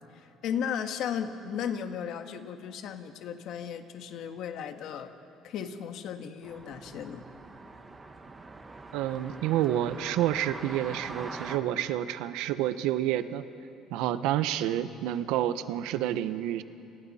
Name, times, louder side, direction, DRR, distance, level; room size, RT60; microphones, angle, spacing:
voice 1, 0.1-5.1 5.4-7.3, left 8 dB, 60° left, 7 dB, 1.5 m, -35 dB
sound 1, 6.4-11.6, right 3 dB, 15° right, 1.3 m, -44 dB
voice 2, 8.9-13.4 13.9-16.6, right 12 dB, 85° right, 12 dB, 0.9 m, -29 dB
28.5 x 28.0 x 4.3 m, 2.7 s
cardioid pair, 155°, 0 cm